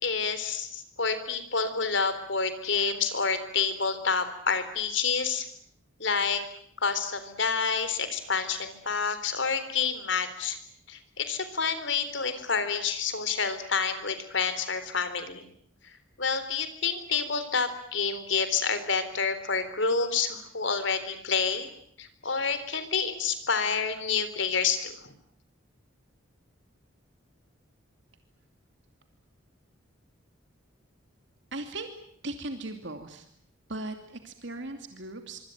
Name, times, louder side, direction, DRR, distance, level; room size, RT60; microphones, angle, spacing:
voice 1, 0.0-5.5 6.0-6.4 6.8-10.6 10.9-15.5 16.2-21.7 22.0-25.1, left 5 dB, 65° left, 11 dB, 3.9 m, -28 dB
voice 2, 31.5-31.9 32.2-33.3 33.7-35.4, right 2 dB, 60° right, 6 dB, 2.6 m, -38 dB
25.5 x 25.0 x 9.2 m, 0.65 s
head